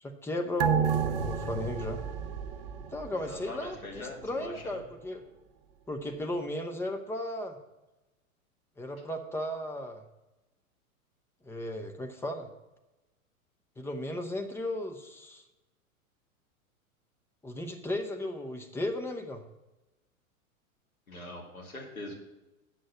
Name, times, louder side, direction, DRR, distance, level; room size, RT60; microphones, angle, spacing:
voice 1, 0.0-2.0 2.9-5.2 5.9-7.6 8.8-10.0 11.4-12.5 13.8-15.4 17.4-19.4, left 1 dB, 5° left, 5 dB, 0.7 m, -35 dB
sound 1, 0.6-3.5 3.8-3.9, right 7 dB, 40° right, 1.0 m, -30 dB
voice 2, 3.1-4.8 21.1-22.1, left 2 dB, 75° left, 0 dB, 2.6 m, -42 dB
8.3 x 6.3 x 7.1 m, 1.0 s
figure-of-eight pair, 100°, 43 cm